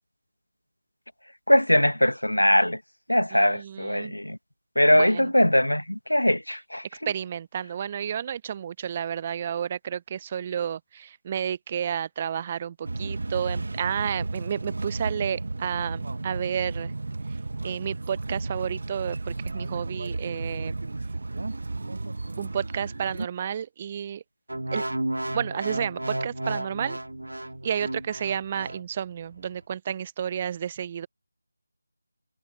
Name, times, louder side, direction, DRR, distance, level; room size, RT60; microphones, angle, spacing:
voice 1, 1.5-2.8 3.1-4.4 4.7-6.8, left 1 dB, 90° left, 1.4 m, -21 dB
voice 2, 3.3-4.1 4.9-5.3 7.1-16.9 17.6-20.7 22.4-24.2 24.7-24.8 25.3-27.0 27.6-31.1, right 8 dB, 25° right, 0.8 m, -31 dB
sound 1, 12.8-23.3, right 3 dB, 55° right, 1.6 m, -33 dB
sound 2, 24.5-28.8 29.4-29.6, right 1 dB, 75° right, 2.6 m, -33 dB
figure-of-eight pair, 160°, 0 cm